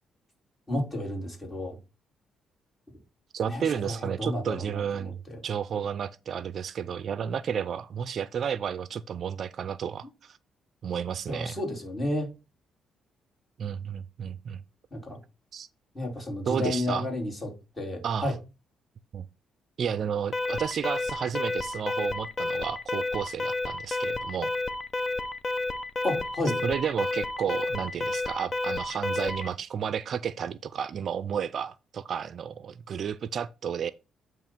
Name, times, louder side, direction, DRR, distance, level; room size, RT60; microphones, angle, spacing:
voice 1, 0.7-1.8 3.5-5.4 11.3-12.3 14.9-15.2 15.9-18.3 26.0-26.6, left 1 dB, 20° left, 3.2 m, -32 dB
voice 2, 3.3-10.4 10.8-11.6 13.6-14.6 15.5-15.7 16.5-17.1 18.0-18.3 19.1-19.3 19.8-24.5 26.6-33.9, right 8 dB, 55° right, 0.4 m, -32 dB
Alarm, 20.3-29.5, left 2 dB, 40° left, 0.7 m, -31 dB
8.9 x 3.1 x 5.9 m
cardioid pair, 105°, 0 cm